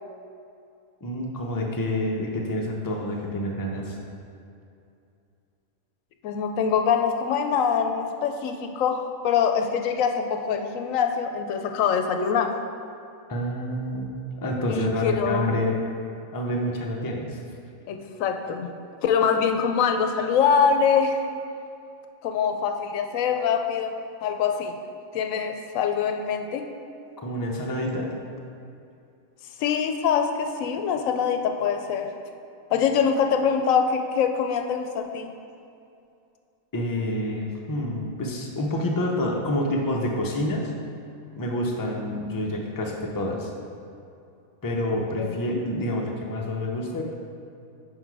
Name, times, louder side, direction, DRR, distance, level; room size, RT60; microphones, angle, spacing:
voice 1, 1.0-4.0 13.3-15.8 16.3-17.4 27.2-28.1 36.7-40.7 41.3-43.5 44.6-47.0, left 1 dB, 25° left, -1 dB, 0.4 m, -28 dB
voice 2, 6.2-12.5 14.7-15.6 17.9-18.7 19.0-21.2 22.2-24.7 25.1-26.7 29.6-32.1 32.7-35.3 45.2-45.6, left 6 dB, 75° left, 5 dB, 0.9 m, -24 dB
6.0 x 5.2 x 4.7 m, 2.5 s
omnidirectional pair, 1.5 m